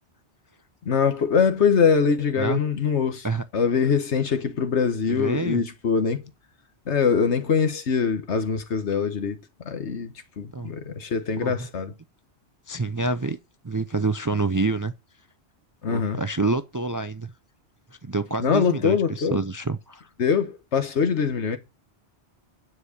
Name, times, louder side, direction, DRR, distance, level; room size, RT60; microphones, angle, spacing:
voice 1, 0.8-3.3 3.5-6.2 6.9-9.4 9.6-11.9 15.8-16.2 18.4-19.4 20.2-21.6, left 6 dB, 85° left, 1.5 m, -23 dB
voice 2, 5.1-5.6 10.5-10.7 11.4-11.7 12.7-13.4 13.6-14.9 15.9-17.3 18.0-20.1, right 3 dB, 30° right, 0.3 m, -27 dB
9.9 x 4.7 x 6.4 m
omnidirectional pair, 1.1 m